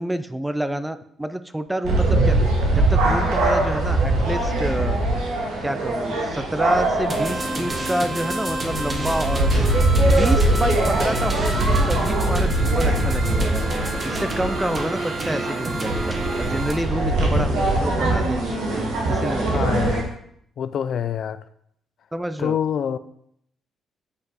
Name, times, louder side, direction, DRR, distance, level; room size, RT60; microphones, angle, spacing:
voice 1, 0.0-2.4 2.7-5.0 5.6-9.6 10.0-13.6 14.0-19.8 22.1-22.6, right 1 dB, 10° right, 11 dB, 0.5 m, -28 dB
sound 1, 1.8-20.0, right 2 dB, 90° right, 2.0 m, -22 dB
sound 2, 7.1-16.7, right 1 dB, 30° right, 1.4 m, -29 dB
voice 2, 19.5-20.2 20.6-21.4 22.4-23.0, left 8 dB, 65° left, 13 dB, 0.4 m, -26 dB
8.3 x 5.1 x 4.1 m, 0.70 s
cardioid pair, 90°, 0 cm